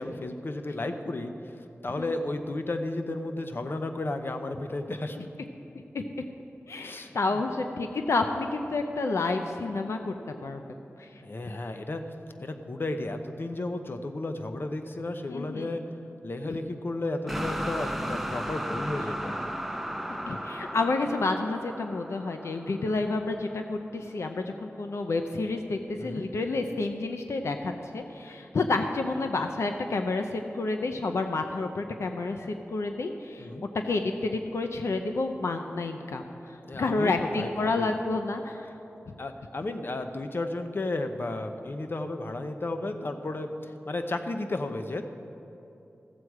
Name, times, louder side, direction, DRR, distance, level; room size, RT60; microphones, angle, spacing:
voice 1, 0.0-1.3 1.8-5.2 6.8-7.4 11.2-12.0 12.4-15.8 16.2-19.3 26.0-26.3 33.4-33.6 36.7-37.9 39.2-45.0, left 2 dB, 50° left, 7 dB, 0.8 m, -33 dB
voice 2, 6.7-10.1 10.4-10.6 11.0-11.1 11.4-11.5 15.3-15.7 16.5-16.6 20.3-33.5 33.8-36.2 36.5-38.7, left 3 dB, 85° left, 5 dB, 0.6 m, -29 dB
sound 1, 17.3-23.3, equal, ahead, 0.7 m, -35 dB
15.0 x 7.7 x 4.8 m, 2.8 s
wide cardioid pair, 60°, 5 cm